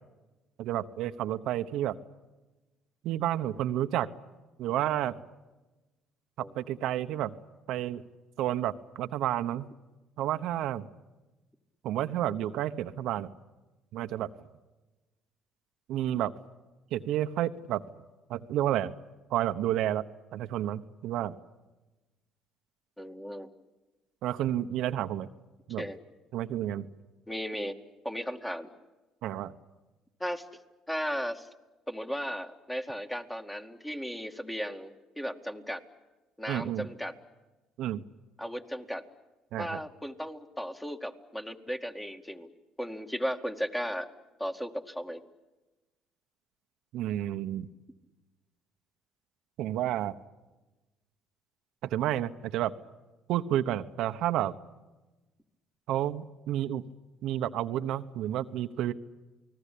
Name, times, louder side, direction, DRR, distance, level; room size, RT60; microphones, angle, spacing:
voice 1, 0.6-2.0 3.0-4.1 4.6-5.1 6.4-7.3 7.7-8.0 8.4-9.7 10.2-10.9 11.8-13.3 13.9-14.3 15.9-16.3 16.9-17.8 18.3-18.9 19.3-20.0 20.3-21.4 24.2-25.3 25.7-25.8 26.3-26.9 29.2-29.5 36.5-36.9 37.8-38.0 39.5-39.8 46.9-47.7 49.6-50.1 51.9-52.7 53.3-54.5 55.9-56.8 57.2-58.9, right 12 dB, 75° right, 8 dB, 1.0 m, -30 dB
voice 2, 23.0-23.5 25.8-26.0 27.3-27.7 28.0-28.7 30.2-30.5 30.9-31.5 31.9-35.8 36.4-37.1 38.4-39.0 39.6-42.5 42.8-44.1 44.4-45.2, equal, 10° left, 5 dB, 2.2 m, -35 dB
29.0 x 19.5 x 8.6 m, 1.1 s
supercardioid pair, 80°, 0 cm